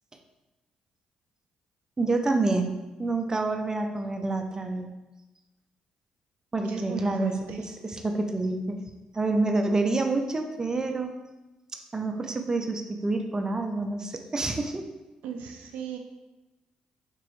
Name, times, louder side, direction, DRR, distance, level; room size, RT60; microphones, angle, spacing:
voice 1, 2.0-4.9 6.5-8.8 9.1-11.1 11.9-14.9, right 2 dB, 25° right, 4 dB, 0.5 m, -28 dB
voice 2, 6.7-7.7 15.2-16.0, right 6 dB, 80° right, 4 dB, 0.4 m, -37 dB
3.7 x 3.0 x 3.1 m, 1.1 s
supercardioid pair, 60°, 3 cm